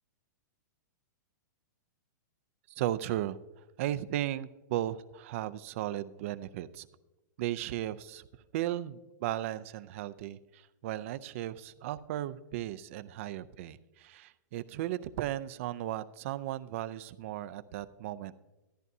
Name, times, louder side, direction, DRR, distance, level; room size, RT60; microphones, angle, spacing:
voice 1, 2.7-6.9 7.4-8.3 8.5-18.3, right 13 dB, 45° right, 14 dB, 0.4 m, -36 dB
13.5 x 10.5 x 2.7 m, 1.1 s
hypercardioid pair, 160°, 10 cm